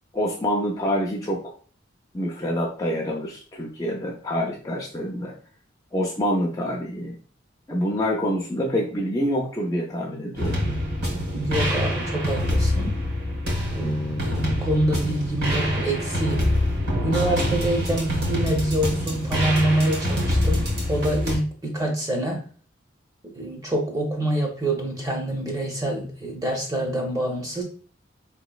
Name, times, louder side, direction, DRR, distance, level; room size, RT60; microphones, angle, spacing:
voice 1, 0.1-1.5 2.1-5.3 5.9-7.2 7.7-10.6, equal, 15° left, -1 dB, 0.4 m, -26 dB
sound 1, 10.4-21.4, equal, 55° right, 1.1 m, -25 dB
voice 2, 11.3-12.9 13.7-16.6 17.0-22.5 23.4-27.6, right 1 dB, 15° right, 1 dB, 0.7 m, -26 dB
4.4 x 3.0 x 2.3 m, 0.42 s
head